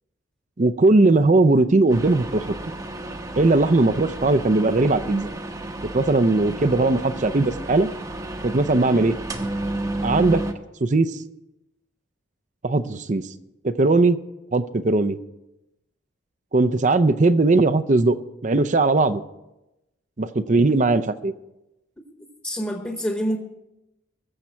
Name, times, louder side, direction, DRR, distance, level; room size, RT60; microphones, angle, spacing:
voice 1, 0.6-2.4 3.4-5.3 5.9-7.9 8.4-9.1 10.0-10.4 10.8-11.1 12.6-13.2 13.6-14.2 14.5-15.2 16.5-18.2 18.4-19.2 20.2-21.3, right 2 dB, 40° right, 11 dB, 0.5 m, -19 dB
sound 1, 1.9-10.5, right 1 dB, 15° right, 0.8 m, -32 dB
voice 2, 22.4-23.4, equal, 10° left, 2 dB, 1.1 m, -26 dB
21.0 x 7.1 x 4.4 m, 0.92 s
head